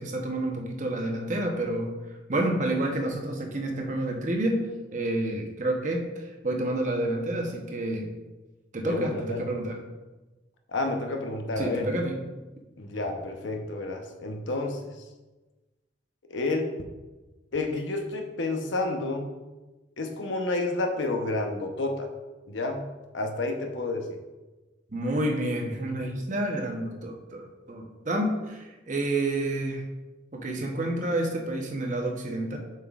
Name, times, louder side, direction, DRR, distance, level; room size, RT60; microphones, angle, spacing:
voice 1, 0.0-1.9 2.3-4.6 4.9-8.1 8.7-9.8 11.6-12.2 24.9-29.8 30.3-32.6, right 1 dB, 40° right, 2 dB, 0.9 m, -29 dB
voice 2, 8.8-9.4 10.7-11.9 12.8-14.8 16.3-16.7 17.5-19.3 20.0-22.1 22.5-22.9 23.1-24.2, left 2 dB, 80° left, 3 dB, 0.8 m, -30 dB
7.3 x 5.5 x 2.4 m, 1.2 s
head